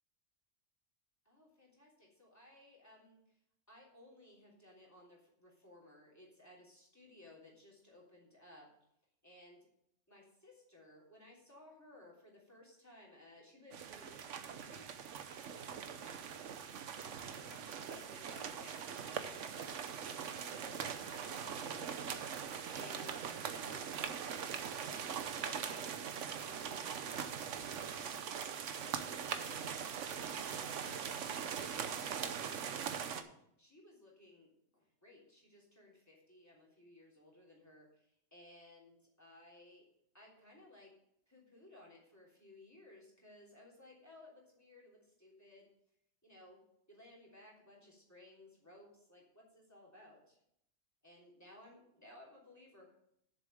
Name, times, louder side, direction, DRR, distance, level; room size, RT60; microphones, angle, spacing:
voice 1, 1.2-3.2 3.7-8.7 9.2-9.7 10.1-15.1 15.4-22.4 22.7-25.0 25.4-27.0 27.5-28.5 28.8-32.5 33.1-33.2 33.6-39.8 40.1-40.9 41.3-45.7 46.2-46.6 46.9-50.4 51.0-52.9, left 1 dB, 15° left, -3 dB, 3.3 m, -59 dB
sound 1, 13.7-33.2, right 7 dB, 85° right, 1.1 m, -41 dB
7.1 x 7.1 x 7.7 m, 0.73 s
omnidirectional pair, 1.2 m